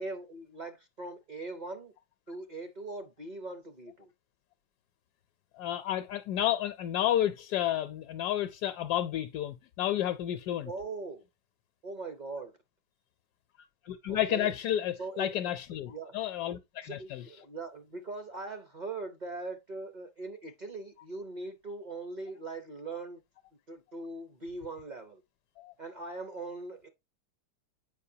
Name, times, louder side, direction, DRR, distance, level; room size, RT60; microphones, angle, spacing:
voice 1, 0.0-1.9 2.3-4.1 10.6-11.2 11.8-12.6 14.1-14.5 15.0-15.5 15.9-16.1 16.8-23.2 23.7-25.2 25.8-26.9, right 3 dB, 45° right, 0.6 m, -41 dB
voice 2, 5.6-10.7 13.8-17.2 25.6-25.7, left 12 dB, 80° left, 1.1 m, -31 dB
8.2 x 5.2 x 2.7 m
omnidirectional pair, 1.7 m